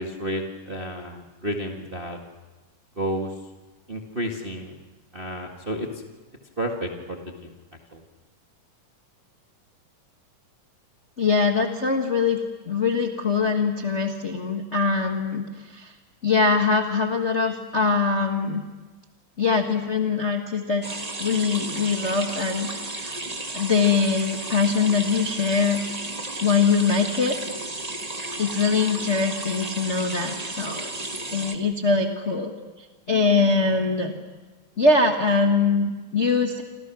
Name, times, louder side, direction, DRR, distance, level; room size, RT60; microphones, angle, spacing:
voice 1, 0.0-2.2 3.0-3.3 3.9-4.8 5.1-6.0 6.6-7.5 7.9-8.0, equal, 25° right, 2 dB, 1.2 m, -31 dB
voice 2, 11.2-12.4 12.6-15.9 16.2-18.6 19.4-20.8 21.2-23.2 23.5-25.8 26.4-27.4 28.4-30.9 31.3-32.5 32.8-34.1 34.8-36.6, left 4 dB, 35° left, 2 dB, 1.1 m, -22 dB
sound 1, 20.8-31.6, right 2 dB, 60° right, 0.4 m, -33 dB
28.5 x 26.0 x 6.1 m, 1.2 s
omnidirectional pair, 3.6 m